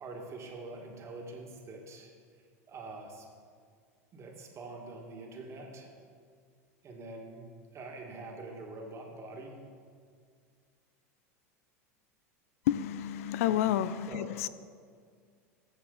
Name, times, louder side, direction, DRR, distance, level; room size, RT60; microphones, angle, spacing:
voice 1, 0.0-2.4 2.7-3.3 4.1-5.9 6.8-7.4 7.7-9.6 13.4-13.6 14.1-14.3, right 2 dB, 35° right, 1 dB, 2.1 m, -45 dB
voice 2, 12.7-14.5, left 11 dB, 65° left, 14 dB, 0.4 m, -30 dB
13.0 x 7.8 x 4.1 m, 2.1 s
hypercardioid pair, 85°, 8 cm